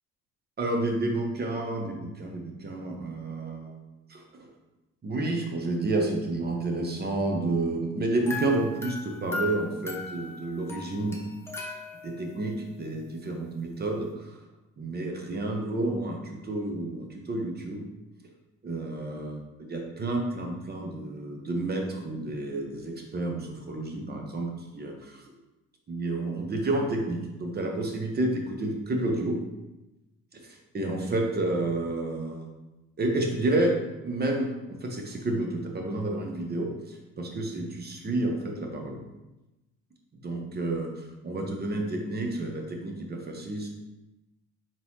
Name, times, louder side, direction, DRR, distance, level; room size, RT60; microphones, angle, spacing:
voice 1, 0.6-3.7 4.1-4.5 5.0-11.2 12.0-14.4 14.8-17.9 18.6-25.2 25.9-29.4 30.3-32.5 33.0-33.7 34.0-39.0 40.2-43.7, right 2 dB, 30° right, 2 dB, 0.9 m, -30 dB
sound 1, 8.3-12.4, left 3 dB, 5° left, 0.7 m, -38 dB
4.3 x 3.8 x 3.1 m, 1.0 s
cardioid pair, 95°, 34 cm